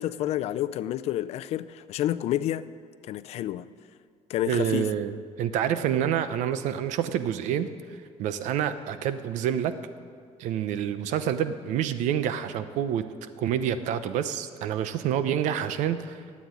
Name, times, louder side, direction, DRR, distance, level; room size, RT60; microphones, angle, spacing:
voice 1, 0.0-2.6 3.0-3.6 4.3-4.9, left 13 dB, 60° left, 0.5 m, -29 dB
voice 2, 4.5-7.7 8.2-9.7 10.4-13.0 13.4-16.2, right 9 dB, 85° right, 0.8 m, -27 dB
13.0 x 8.6 x 9.8 m
cardioid pair, 165°, 12 cm